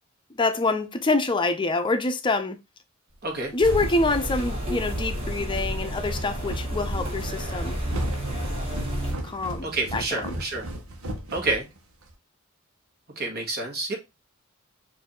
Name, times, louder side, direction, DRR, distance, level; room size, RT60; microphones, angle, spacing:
voice 1, 0.3-2.6 3.5-7.8 9.2-10.4, left 3 dB, 25° left, 0.6 m, -26 dB
sound 1, 3.2-12.1, right 1 dB, 90° right, 1.1 m, -37 dB
sound 2, 3.6-9.1, equal, 30° right, 2.0 m, -30 dB
voice 2, 9.6-10.7 11.3-11.6 13.2-14.0, right 3 dB, 50° right, 1.6 m, -28 dB
4.6 x 2.7 x 4.3 m
head